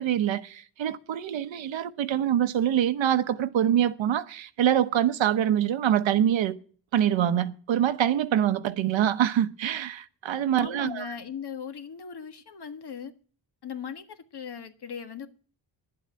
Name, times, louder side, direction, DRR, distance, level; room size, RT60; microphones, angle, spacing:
voice 1, 0.0-6.5 6.9-11.1, right 10 dB, 90° right, 0.9 m, -25 dB
voice 2, 10.6-13.1 13.6-15.3, left 7 dB, 60° left, 1.6 m, -38 dB
10.5 x 7.8 x 8.8 m
cardioid pair, 75°, 44 cm